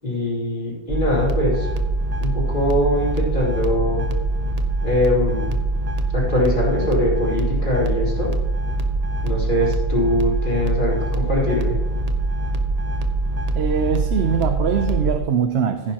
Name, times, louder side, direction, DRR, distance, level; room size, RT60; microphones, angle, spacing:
voice 1, 0.0-1.7 2.2-4.0 4.8-5.6 6.1-8.3 9.2-11.8, left 1 dB, 50° left, -6 dB, 4.6 m, -22 dB
sound 1, 0.9-15.2, right 2 dB, 40° right, 1.0 m, -23 dB
voice 2, 13.5-15.9, right 7 dB, 75° right, 8 dB, 1.0 m, -22 dB
15.5 x 10.0 x 3.0 m, 1.2 s
omnidirectional pair, 1.1 m